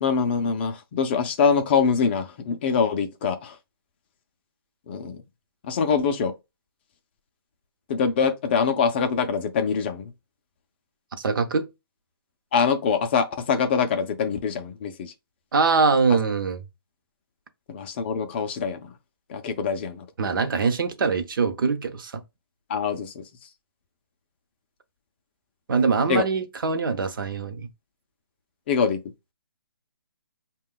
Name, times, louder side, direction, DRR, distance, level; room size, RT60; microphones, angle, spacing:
voice 1, 0.0-3.6 4.9-5.2 5.6-6.3 7.9-10.1 12.5-15.1 16.1-16.2 17.7-18.9 19.3-20.1 22.7-23.2 26.1-26.2 28.7-29.0, left 6 dB, 25° left, 0.4 m, -24 dB
voice 2, 11.2-11.7 15.5-16.6 20.2-22.1 25.7-27.7, right 5 dB, 60° right, 0.7 m, -23 dB
5.4 x 2.2 x 3.7 m
hypercardioid pair, 155°, 12 cm